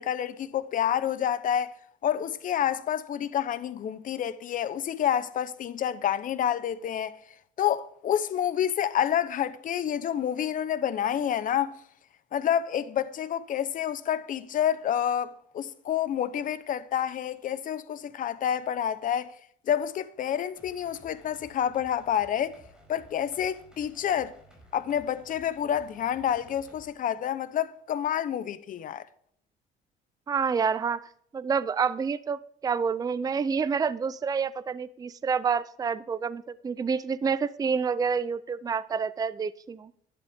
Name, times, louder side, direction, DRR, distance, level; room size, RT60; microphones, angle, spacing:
voice 1, 0.0-1.7 2.0-7.2 7.6-11.8 12.3-19.3 19.7-22.6 22.9-24.3 24.7-29.0, left 9 dB, 50° left, 0.9 m, -28 dB
sound 1, 20.6-26.9, right 1 dB, 5° right, 5.0 m, -55 dB
voice 2, 30.3-31.0 31.3-39.9, right 6 dB, 20° right, 0.5 m, -28 dB
11.5 x 11.5 x 3.6 m
cardioid pair, 110°, 17 cm